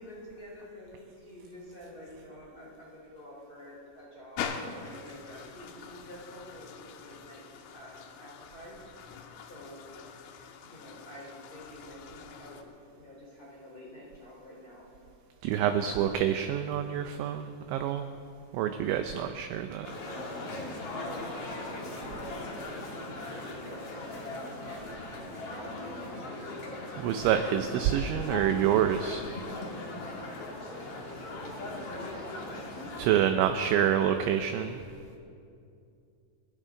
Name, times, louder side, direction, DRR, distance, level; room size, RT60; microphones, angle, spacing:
voice 1, 0.0-4.4 4.8-8.8 9.4-9.9 10.6-12.6 13.0-14.9 15.6-16.2 21.0-26.6 30.6-32.6, left 1 dB, 20° left, -5 dB, 3.6 m, -48 dB
sound 1, 4.4-12.6, left 6 dB, 85° left, 3.5 m, -43 dB
voice 2, 15.4-18.1 18.5-19.9 27.0-29.3 33.0-34.8, right 9 dB, 80° right, 7 dB, 2.7 m, -27 dB
sound 2, 19.8-33.0, left 2 dB, 55° left, 1.7 m, -39 dB
30.0 x 11.5 x 3.8 m, 2.5 s
omnidirectional pair, 5.9 m